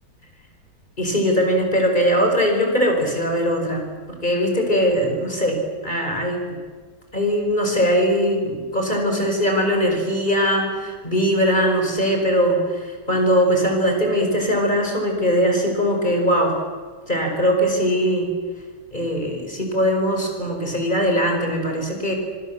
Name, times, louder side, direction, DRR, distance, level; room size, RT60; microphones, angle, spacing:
voice 1, 1.0-3.9 4.2-6.6 7.1-16.6 17.1-18.3 18.9-22.1, equal, 25° left, 2 dB, 5.4 m, -21 dB
25.0 x 24.5 x 7.2 m, 1.5 s
omnidirectional pair, 1.8 m